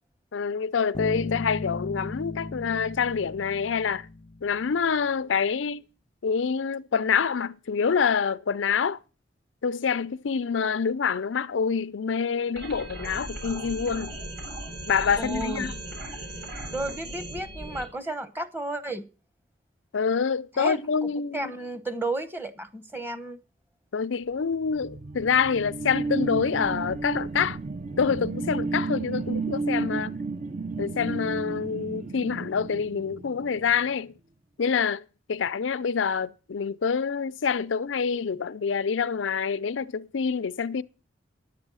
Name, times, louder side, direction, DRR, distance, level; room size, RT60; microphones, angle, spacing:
voice 1, 0.3-4.1 4.4-5.8 6.2-9.0 9.6-14.2 14.9-15.7 19.9-21.5 23.9-27.6 28.0-30.2 30.8-34.1 34.6-40.8, left 6 dB, 90° left, 0.5 m, -26 dB
Bass guitar, 0.9-4.7, left 2 dB, 25° left, 0.6 m, -36 dB
sound 1, 12.6-17.8, right 1 dB, 70° right, 7.0 m, -37 dB
voice 2, 15.2-15.7 16.7-19.0 20.5-23.4, right 2 dB, 10° right, 1.0 m, -33 dB
sound 2, 24.5-33.8, right 3 dB, 40° right, 0.6 m, -32 dB
10.5 x 8.2 x 6.2 m
head